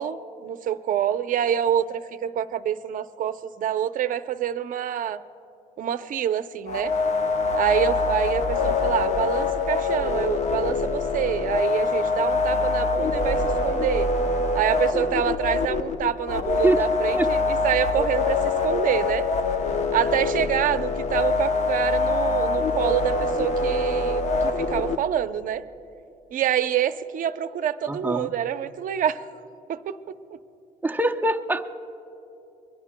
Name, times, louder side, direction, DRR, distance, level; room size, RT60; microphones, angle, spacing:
voice 1, 0.0-5.2 5.8-6.9 7.5-14.1 14.5-19.3 19.9-25.6 26.3-29.3 29.7-30.0, right 10 dB, 55° right, 11 dB, 0.6 m, -26 dB
sound 1, 6.7-25.0, left 3 dB, 45° left, 0.8 m, -24 dB
voice 2, 27.9-28.3 30.8-31.7, right 2 dB, 10° right, 6 dB, 0.6 m, -24 dB
27.5 x 22.5 x 2.2 m, 2.9 s
cardioid pair, 110°, 17 cm